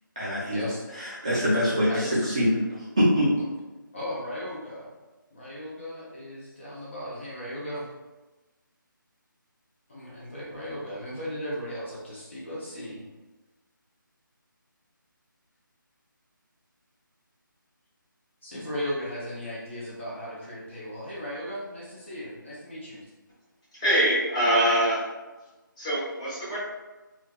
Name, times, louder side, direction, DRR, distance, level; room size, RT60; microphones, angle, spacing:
voice 1, 0.2-0.6 0.9-2.6 3.0-3.3, equal, 20° right, -10 dB, 0.4 m, -24 dB
voice 2, 1.9-2.3 3.9-4.9 5.3-7.9 9.9-13.1 18.4-23.0, equal, 35° left, -7 dB, 0.7 m, -36 dB
voice 3, 23.7-25.0 25.8-26.6, equal, 20° left, -11 dB, 1.1 m, -24 dB
4.3 x 2.3 x 2.2 m, 1.1 s
figure-of-eight pair, 175°, 11 cm